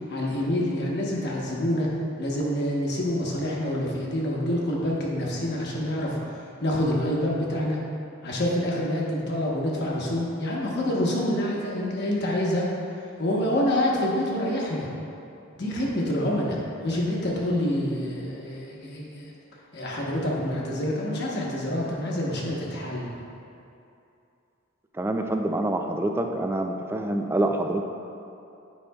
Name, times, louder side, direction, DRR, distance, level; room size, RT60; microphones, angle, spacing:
voice 1, 0.1-1.9 2.2-7.8 8.2-12.7 13.2-14.9 15.5-19.3 19.7-23.1, left 1 dB, 55° left, -3 dB, 1.1 m, -27 dB
voice 2, 24.9-27.8, right 1 dB, 10° right, 3 dB, 0.3 m, -26 dB
9.3 x 5.2 x 2.3 m, 2.7 s
head